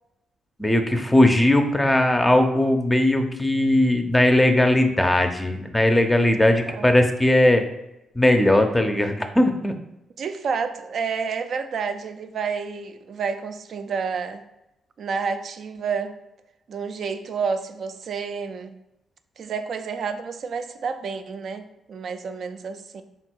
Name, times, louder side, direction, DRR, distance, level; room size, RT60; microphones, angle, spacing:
voice 1, 0.6-7.6 8.2-9.7, left 1 dB, 10° left, 5 dB, 0.5 m, -19 dB
voice 2, 10.2-14.4 15.0-16.2 16.7-18.8 19.4-23.0, right 5 dB, 60° right, 9 dB, 0.3 m, -29 dB
3.8 x 2.2 x 4.3 m, 0.89 s
cardioid pair, 75°, 0 cm